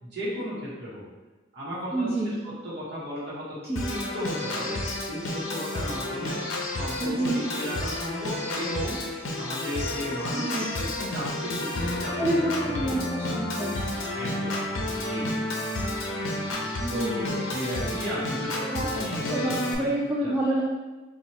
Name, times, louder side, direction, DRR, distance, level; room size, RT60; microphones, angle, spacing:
voice 1, 0.0-1.0 1.5-3.6 3.9-4.8 5.1-7.2 7.5-9.0 9.3-12.2 12.6-13.4 14.1-15.3 16.9-19.9 20.2-20.6, equal, 60° right, -8 dB, 1.0 m, -35 dB
voice 2, 1.9-2.4 3.7-3.8 7.0-7.4 10.3-10.7 12.2-13.7 16.8-17.2 18.7-18.9 19.3-20.6, right 1 dB, 10° right, -6 dB, 0.3 m, -28 dB
Organ, 3.8-19.8, left 1 dB, 80° left, 0.6 m, -31 dB
4.3 x 2.3 x 2.9 m, 1.2 s
head